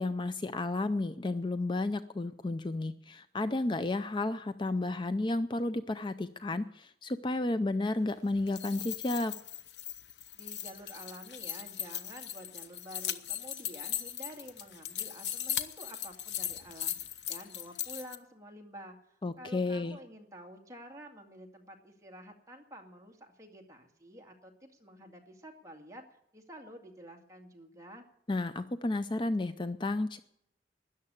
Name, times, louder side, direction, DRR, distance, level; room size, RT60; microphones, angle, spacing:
voice 1, 0.0-9.3 19.2-20.0 28.3-30.2, left 2 dB, 25° left, 12 dB, 0.5 m, -32 dB
sound 1, 8.3-18.2, left 10 dB, 75° left, 0.9 m, -38 dB
voice 2, 10.3-17.0 17.2-28.1, equal, 20° right, 2 dB, 2.2 m, -50 dB
13.0 x 10.0 x 8.4 m, 0.74 s
head